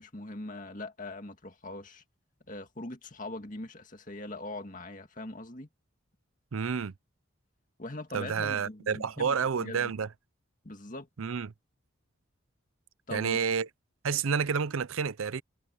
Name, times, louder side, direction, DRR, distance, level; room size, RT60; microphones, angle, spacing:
voice 1, 0.0-2.0 2.5-5.7 7.8-9.9 10.6-11.1 13.1-13.4, left 2 dB, 40° left, 2.1 m, -41 dB
voice 2, 6.5-6.9 8.1-10.1 11.2-11.5 13.1-13.7 14.0-15.4, right 6 dB, 80° right, 0.6 m, -29 dB
head